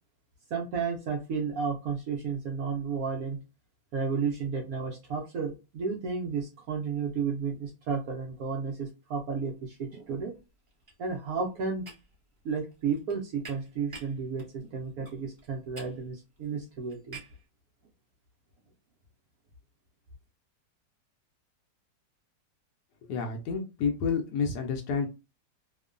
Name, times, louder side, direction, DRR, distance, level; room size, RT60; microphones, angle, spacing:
voice 1, 0.5-3.4 3.9-10.3 11.0-11.8 12.4-17.2, right 5 dB, 70° right, 0 dB, 0.9 m, -32 dB
sound 1, 9.6-10.0 10.2-17.5, right 3 dB, 35° right, 0.5 m, -50 dB
voice 2, 23.0-25.1, left 5 dB, 70° left, 3 dB, 1.0 m, -29 dB
2.9 x 2.1 x 2.4 m, 0.28 s
omnidirectional pair, 2.0 m